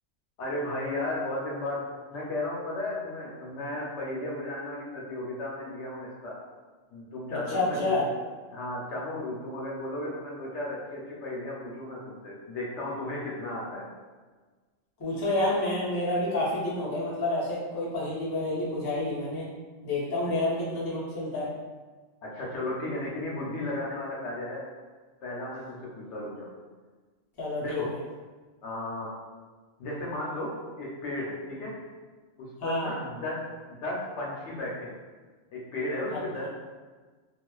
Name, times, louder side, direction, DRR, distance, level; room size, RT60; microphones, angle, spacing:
voice 1, 0.4-6.4 6.9-8.0 8.5-13.9 22.2-24.6 25.2-26.5 27.6-27.9 28.6-29.1 29.8-31.8 32.4-33.4 33.7-35.0 35.5-36.5, left 1 dB, 75° left, -4 dB, 0.9 m, -34 dB
voice 2, 7.5-8.0 15.0-19.5 19.8-21.5 27.4-27.8 32.6-32.9 36.1-36.2, left 2 dB, 30° left, -7 dB, 0.4 m, -29 dB
2.4 x 2.3 x 2.2 m, 1.4 s
omnidirectional pair, 1.3 m